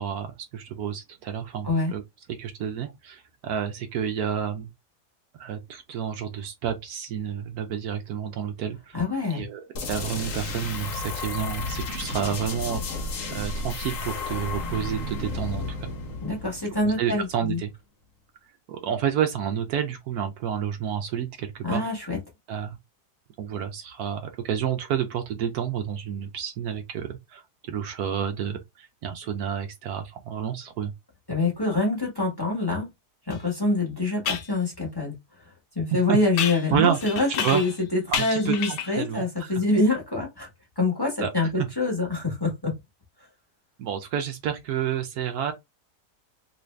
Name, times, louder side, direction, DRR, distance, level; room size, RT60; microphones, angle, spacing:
voice 1, 0.0-2.0 2.3-4.7 5.4-9.0 9.3-9.6 9.9-15.9 16.8-17.7 18.7-21.8 22.5-22.8 23.4-30.9 36.1-36.2 36.7-37.0 37.4-37.6 38.1-39.6 41.2-41.7 43.8-45.5, right 8 dB, 75° right, 1.1 m, -30 dB
voice 2, 8.9-9.4 16.2-17.6 21.6-22.2 31.3-32.9 33.3-35.1 35.4-35.5 35.7-40.5 40.8-42.7, left 2 dB, 15° left, 1.3 m, -25 dB
sound 1, 9.8-17.3, left 3 dB, 55° left, 1.2 m, -33 dB
sound 2, 33.3-33.4 34.3-34.5 36.4-37.8 38.1-39.0, left 8 dB, 80° left, 1.2 m, -30 dB
3.1 x 2.6 x 3.1 m
omnidirectional pair, 1.7 m